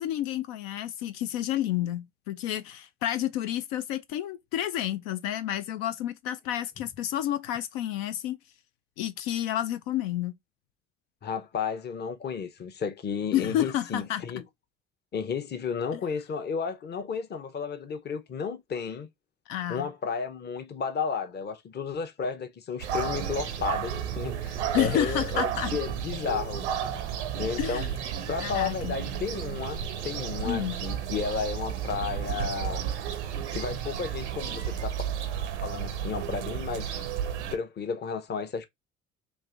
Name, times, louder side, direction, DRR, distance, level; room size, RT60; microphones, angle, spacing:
voice 1, 0.0-8.4 9.0-10.3 13.3-14.2 19.5-19.9 24.7-25.7 27.6-27.9 28.4-28.9 30.4-30.8, left 12 dB, 65° left, 0.5 m, -30 dB
voice 2, 11.2-14.4 15.1-19.1 19.7-26.7 27.4-27.8 28.3-29.8 30.0-32.8 33.5-35.0 35.6-37.0 37.5-38.7, left 6 dB, 30° left, 0.8 m, -33 dB
sound 1, 22.8-37.6, right 9 dB, 80° right, 0.6 m, -33 dB
sound 2, 22.9-23.1 23.6-34.0, right 7 dB, 25° right, 0.5 m, -44 dB
3.2 x 2.6 x 3.7 m
hypercardioid pair, 55°, 34 cm